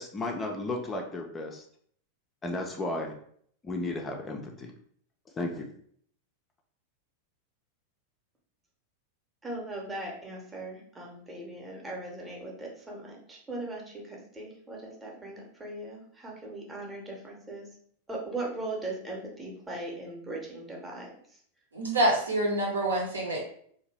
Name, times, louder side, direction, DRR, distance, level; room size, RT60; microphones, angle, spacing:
voice 1, 0.0-1.6 2.4-3.1 3.6-4.7 5.4-5.6, left 2 dB, 20° left, 2 dB, 0.4 m, -34 dB
voice 2, 9.4-17.7 18.1-21.1, right 2 dB, 15° right, -1 dB, 0.8 m, -39 dB
voice 3, 21.7-23.4, right 1 dB, 75° right, -1 dB, 0.8 m, -26 dB
2.6 x 2.2 x 3.1 m, 0.62 s
figure-of-eight pair, 90°, 0 cm